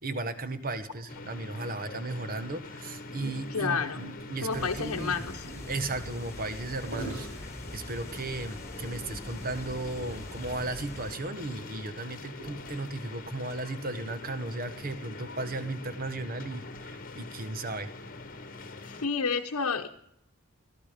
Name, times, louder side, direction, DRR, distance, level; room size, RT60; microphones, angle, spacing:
voice 1, 0.0-3.8 4.3-5.3 5.7-17.9, right 2 dB, 40° right, 10 dB, 1.2 m, -35 dB
sound 1, 1.1-19.1, left 3 dB, 40° left, 1.2 m, -44 dB
Gurgling, 2.8-8.3 8.9-9.0 9.2-9.4 9.8-9.9 10.6-13.1 13.8-13.9, right 2 dB, 70° right, 5.8 m, -45 dB
voice 2, 3.5-4.0 4.4-5.5 18.8-19.9, left 5 dB, 90° left, 1 dB, 0.9 m, -30 dB
sound 2, 4.5-11.1, left 1 dB, 15° left, 1.8 m, -43 dB
22.0 x 13.0 x 5.1 m, 0.79 s
head